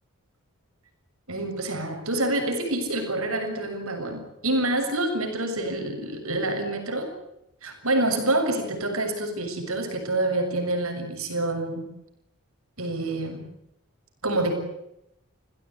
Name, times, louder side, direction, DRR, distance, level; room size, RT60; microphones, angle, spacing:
voice 1, 1.3-7.1 7.6-11.9 12.8-13.4 14.2-14.6, right 2 dB, 75° right, 5 dB, 6.9 m, -27 dB
30.0 x 16.5 x 10.0 m, 0.84 s
head